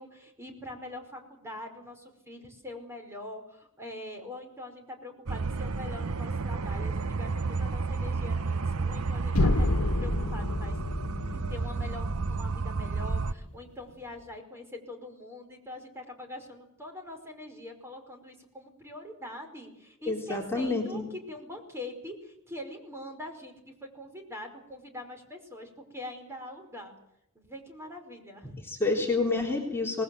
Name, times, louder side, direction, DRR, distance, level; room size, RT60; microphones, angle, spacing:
voice 1, 0.0-10.8 11.3-21.0 21.3-26.9 27.3-28.6, left 1 dB, 10° right, 4 dB, 5.1 m, -43 dB
sound 1, 5.3-13.3, right 4 dB, 75° right, 0.8 m, -31 dB
sound 2, 9.3-13.3, left 1 dB, 85° left, 1.4 m, -29 dB
voice 2, 20.1-21.0 28.7-30.0, left 3 dB, 10° left, -2 dB, 3.6 m, -28 dB
25.0 x 20.5 x 7.8 m, 0.80 s
head